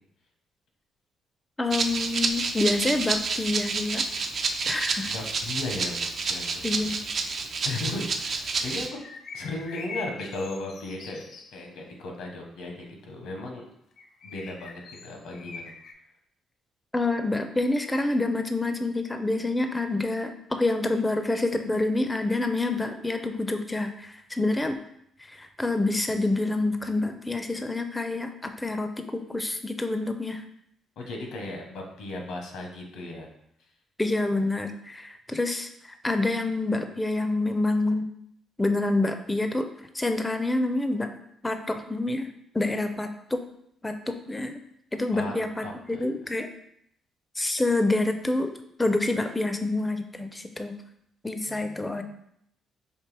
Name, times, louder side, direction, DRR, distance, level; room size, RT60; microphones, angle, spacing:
voice 1, 1.6-4.0 4.7-5.1 6.6-7.0 16.9-24.8 25.2-30.4 34.0-38.0 38.6-39.7 39.9-41.1 41.4-42.3 42.5-43.4 43.8-44.6 44.9-46.5 47.4-48.5 48.8-50.8 51.2-52.0, left 2 dB, 15° left, 7 dB, 0.4 m, -27 dB
Rattle (instrument), 1.7-8.9, right 4 dB, 50° right, 0.4 m, -29 dB
voice 2, 5.1-6.9 7.6-9.0 9.3-11.2 11.5-13.6 14.2-15.7 31.0-33.3 45.1-45.3 45.6-46.0 51.5-52.0, left 2 dB, 85° left, 2 dB, 0.9 m, -36 dB
sound 1, 8.9-11.6 14.0-15.9, left 4 dB, 70° left, 0.6 m, -42 dB
4.4 x 2.8 x 3.3 m, 0.73 s
cardioid pair, 90°, 0 cm